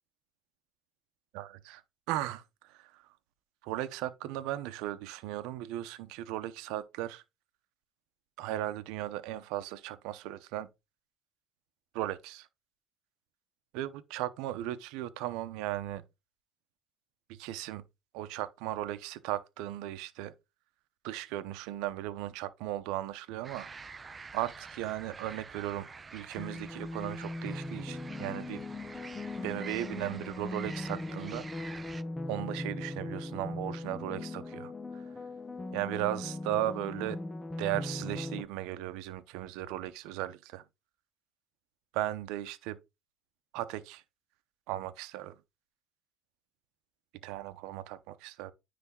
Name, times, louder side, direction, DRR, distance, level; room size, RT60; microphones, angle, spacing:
voice 1, 1.3-1.8 2.1-3.0 3.6-7.2 8.4-10.7 11.9-12.4 13.7-16.0 17.3-17.8 18.1-20.3 21.0-28.6 29.4-31.9 32.3-35.0 35.7-37.2 37.6-40.6 41.9-42.8 43.5-44.0 44.7-45.3 47.2-48.5, right 14 dB, 75° right, 0.8 m, -37 dB
sound 1, 23.4-32.0, right 4 dB, 20° right, 0.4 m, -48 dB
sound 2, 26.4-38.4, left 2 dB, 15° left, 0.7 m, -39 dB
9.8 x 3.4 x 3.7 m
cardioid pair, 130°, 0 cm